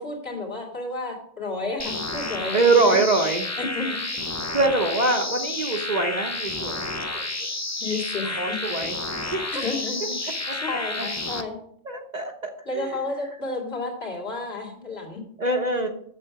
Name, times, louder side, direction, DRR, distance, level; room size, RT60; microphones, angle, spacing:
voice 1, 0.0-3.0 3.6-4.2 7.8-8.6 9.2-11.6 12.7-15.2, left 3 dB, 55° left, -1 dB, 2.8 m, -32 dB
sound 1, 1.8-11.4, left 2 dB, 20° left, 0.5 m, -30 dB
voice 2, 2.5-3.4 4.5-7.2 8.4-9.4 10.5-10.6 11.0-11.1 11.8-12.9 15.4-15.9, right 3 dB, 40° right, 3 dB, 0.9 m, -24 dB
7.6 x 7.3 x 5.8 m, 0.66 s
omnidirectional pair, 1.3 m